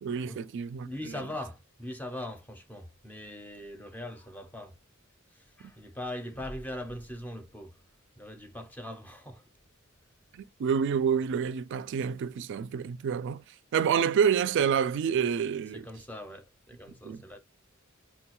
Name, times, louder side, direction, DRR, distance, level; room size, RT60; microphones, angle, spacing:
voice 1, 0.0-0.9 10.3-13.4 13.7-15.9 17.0-17.2, right 7 dB, 60° right, 0.3 m, -28 dB
voice 2, 0.8-4.7 5.3-7.8 8.2-9.4 15.7-17.4, left 1 dB, 10° left, 0.5 m, -41 dB
3.7 x 2.2 x 2.9 m
head